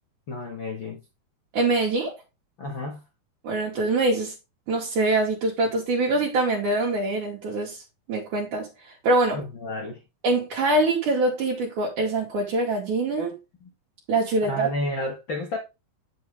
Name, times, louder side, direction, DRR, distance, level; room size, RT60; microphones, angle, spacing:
voice 1, 0.3-1.0 2.6-3.0 9.3-10.0 13.6-13.7 14.4-15.6, left 1 dB, 55° left, 1.3 m, -31 dB
voice 2, 1.5-2.1 3.4-4.3 4.7-7.8 8.1-8.7 9.0-9.4 10.2-13.3 14.1-14.7, right 2 dB, 60° right, 2.8 m, -24 dB
9.1 x 6.6 x 3.6 m
omnidirectional pair, 4.3 m